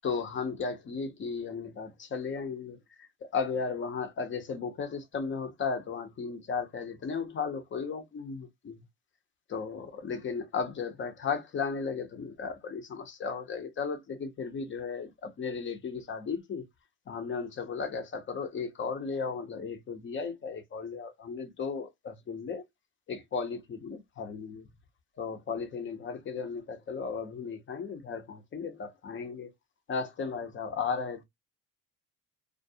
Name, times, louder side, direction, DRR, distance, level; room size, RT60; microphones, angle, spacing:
voice 1, 0.0-2.8 3.2-8.8 9.5-16.6 17.1-22.6 23.1-24.7 25.2-29.5 29.9-31.2, left 5 dB, 35° left, 0.9 m, -35 dB
2.4 x 2.3 x 2.7 m
supercardioid pair, 95°, 32 cm